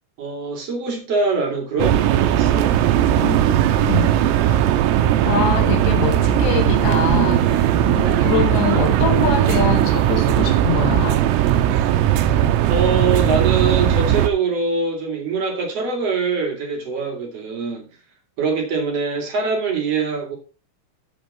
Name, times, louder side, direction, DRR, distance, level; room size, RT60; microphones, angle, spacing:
voice 1, 0.2-2.8 12.7-17.9 18.4-20.4, right 4 dB, 45° right, 2.3 m, -23 dB
sound 1, 1.8-14.3, right 11 dB, 85° right, 3.6 m, -18 dB
voice 2, 3.2-4.1 5.3-11.2, left 9 dB, 80° left, 2.6 m, -24 dB
14.5 x 4.9 x 4.1 m
omnidirectional pair, 5.9 m